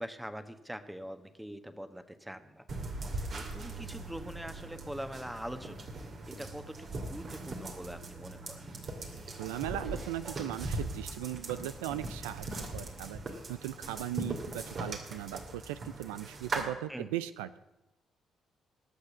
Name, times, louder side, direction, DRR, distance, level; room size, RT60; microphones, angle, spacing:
voice 1, 0.0-2.9 3.2-5.9 6.3-8.6 16.9-17.1, equal, 5° right, 9 dB, 1.4 m, -43 dB
sound 1, 2.7-16.6, right 2 dB, 55° right, 2.5 m, -40 dB
voice 2, 9.4-13.2 13.5-17.6, right 13 dB, 90° right, 13 dB, 0.5 m, -38 dB
19.5 x 6.7 x 6.9 m, 0.95 s
hypercardioid pair, 55°, 0 cm